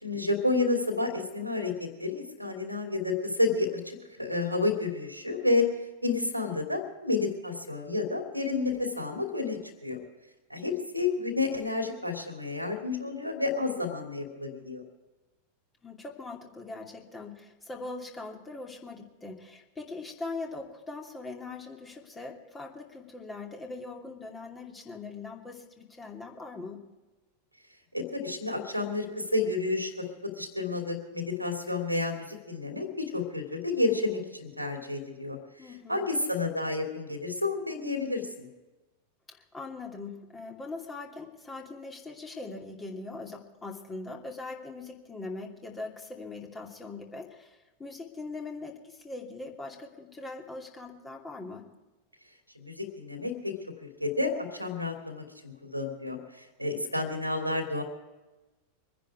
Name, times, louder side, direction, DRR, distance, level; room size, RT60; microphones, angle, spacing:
voice 1, 0.0-1.7 2.0-5.7 6.0-10.0 10.5-14.8 27.9-38.5 52.5-53.5 53.8-57.8, left 3 dB, 90° right, 4 dB, 2.7 m, -30 dB
voice 2, 15.8-26.8 35.6-36.0 39.3-51.6, left 3 dB, 15° left, 1 dB, 2.7 m, -41 dB
25.0 x 10.5 x 4.7 m, 1.1 s
figure-of-eight pair, 90°, 0 cm